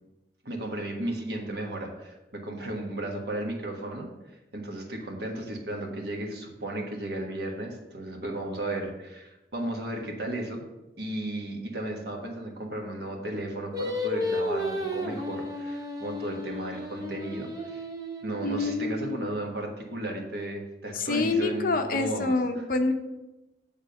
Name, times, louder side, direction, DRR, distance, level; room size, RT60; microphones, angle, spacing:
voice 1, 0.4-10.6 11.0-17.9 18.2-22.6, right 1 dB, 60° right, 1 dB, 1.4 m, -34 dB
Singing, 13.7-19.0, left 1 dB, 20° right, 0.8 m, -33 dB
voice 2, 18.4-19.3 20.9-22.9, left 3 dB, 50° left, 6 dB, 0.7 m, -27 dB
8.6 x 3.6 x 6.5 m, 1.0 s
head